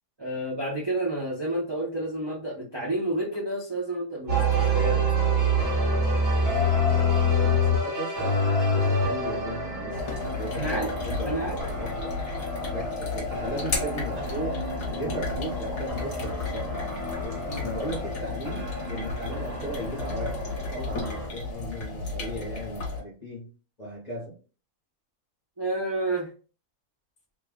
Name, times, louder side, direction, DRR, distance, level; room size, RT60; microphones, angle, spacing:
voice 1, 0.2-5.0 10.5-10.9 11.3-11.6 17.5-17.6 25.6-26.3, right 1 dB, 30° right, -4 dB, 0.5 m, -30 dB
sound 1, 4.3-21.3, equal, 50° right, 1.5 m, -28 dB
voice 2, 7.2-8.4 8.7-12.2 12.7-16.9 17.2-23.5 23.8-24.4, equal, 35° left, -3 dB, 0.8 m, -37 dB
sound 2, 9.9-23.0, left 3 dB, 55° left, 1.1 m, -33 dB
3.1 x 2.2 x 3.5 m, 0.37 s
omnidirectional pair, 1.6 m